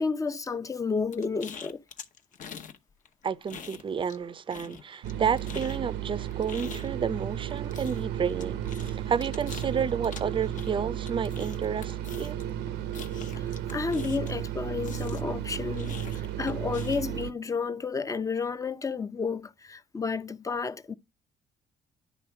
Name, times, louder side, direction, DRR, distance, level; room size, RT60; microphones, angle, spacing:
voice 1, 0.0-1.8 13.4-20.9, left 4 dB, 20° left, 0.5 m, -31 dB
sound 1, 1.1-2.8 3.0-4.2 4.5-14.5 14.8-17.2, left 7 dB, 50° left, 0.9 m, -45 dB
voice 2, 3.2-12.4, right 7 dB, 30° right, 0.5 m, -31 dB
sound 2, 5.0-17.3, right 11 dB, 90° right, 0.8 m, -34 dB
10.0 x 3.4 x 4.7 m
cardioid pair, 110°, 17 cm